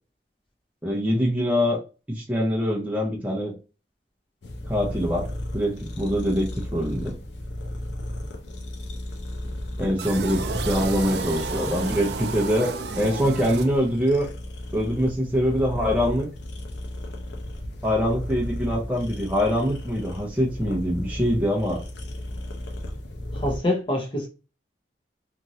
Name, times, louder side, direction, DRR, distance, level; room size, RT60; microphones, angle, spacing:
voice 1, 0.8-1.8 2.1-3.5 4.7-5.3 5.5-7.2 9.8-14.3 14.7-16.3 17.8-21.8, equal, 10° right, 0.6 m, -24 dB
sound 1, 4.4-23.6, left 1 dB, 75° left, 0.6 m, -34 dB
sound 2, 10.0-14.2, right 4 dB, 65° right, 0.4 m, -32 dB
voice 2, 23.3-24.3, left 1 dB, 30° left, 0.8 m, -25 dB
3.0 x 2.5 x 2.6 m
head